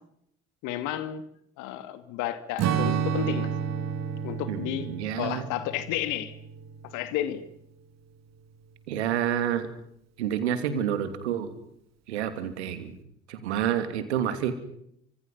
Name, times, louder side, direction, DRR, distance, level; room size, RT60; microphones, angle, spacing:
voice 1, 0.6-1.2 1.6-3.5 4.2-4.9 5.2-6.3 6.9-7.4, left 12 dB, 60° left, 11 dB, 2.5 m, -31 dB
Strum, 2.6-7.2, right 7 dB, 50° right, 2.4 m, -31 dB
voice 2, 4.5-5.4 8.9-9.7 10.2-11.5 12.1-13.0 13.3-14.6, right 9 dB, 75° right, 10 dB, 2.8 m, -29 dB
29.0 x 25.5 x 5.7 m, 0.72 s
figure-of-eight pair, 55°, 34 cm